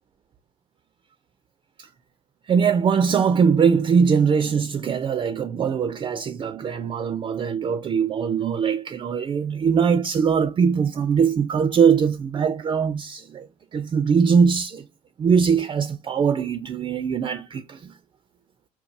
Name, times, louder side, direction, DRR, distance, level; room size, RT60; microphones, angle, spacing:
voice 1, 2.5-13.5 13.7-14.8 15.2-17.9, right 6 dB, 25° right, 0.4 m, -21 dB
3.9 x 2.2 x 2.6 m
hypercardioid pair, 65°, 18 cm